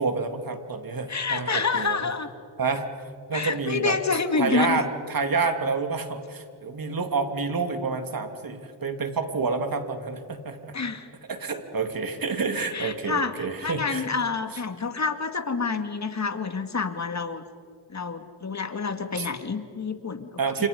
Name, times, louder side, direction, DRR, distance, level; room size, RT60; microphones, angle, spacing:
voice 1, 0.0-2.1 2.6-2.9 3.3-4.0 4.4-10.7 11.3-14.0 19.2-19.3 20.4-20.7, right 4 dB, 45° right, 6 dB, 3.1 m, -28 dB
voice 2, 1.1-2.3 3.3-4.8 10.7-11.1 12.6-17.4 17.9-20.3 20.6-20.7, left 4 dB, 35° left, 8 dB, 2.3 m, -28 dB
29.0 x 28.0 x 5.4 m, 2.1 s
cardioid pair, 60°, 46 cm